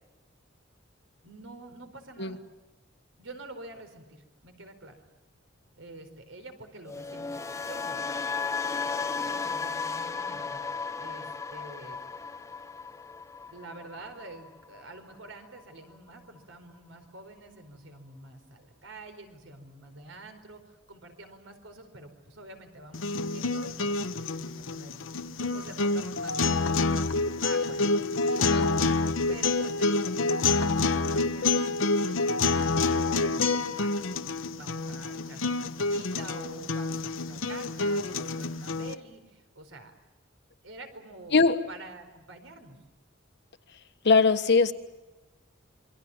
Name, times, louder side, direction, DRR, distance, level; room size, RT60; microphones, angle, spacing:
voice 1, 1.2-2.4 3.2-5.0 5.8-8.0 9.2-10.6 11.0-12.0 13.5-28.6 29.3-39.9 40.6-41.4 41.7-42.8, right 2 dB, 80° right, 7 dB, 4.6 m, -47 dB
sound 1, 6.9-15.0 15.2-15.6, left 5 dB, 15° left, 0.8 m, -35 dB
sound 2, 22.9-38.9, left 3 dB, 85° left, 1.1 m, -27 dB
voice 2, 41.3-41.7 44.0-44.7, left 4 dB, 60° left, 10 dB, 1.4 m, -21 dB
27.5 x 24.0 x 7.3 m, 1.1 s
head